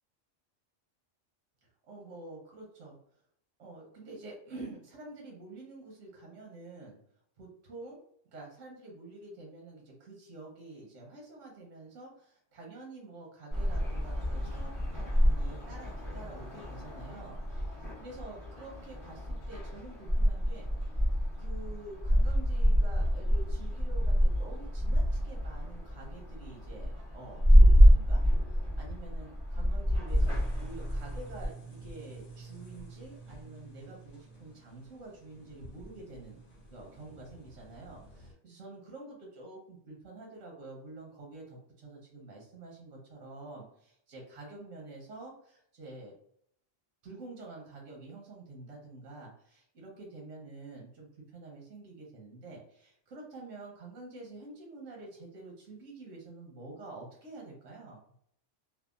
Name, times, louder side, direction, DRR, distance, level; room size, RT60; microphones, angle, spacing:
voice 1, 1.9-3.0 3.6-7.0 7.4-8.0 8.3-14.7 15.0-21.0 21.4-28.2 28.5-36.4 36.7-46.1 47.0-58.0, right 2 dB, 80° right, -1 dB, 1.1 m, -48 dB
sound 1, 13.5-31.5, equal, 15° right, 0.9 m, -26 dB
sound 2, 30.1-38.3, right 3 dB, 35° left, 1.0 m, -50 dB
2.7 x 2.3 x 2.3 m, 0.67 s
omnidirectional pair, 1.3 m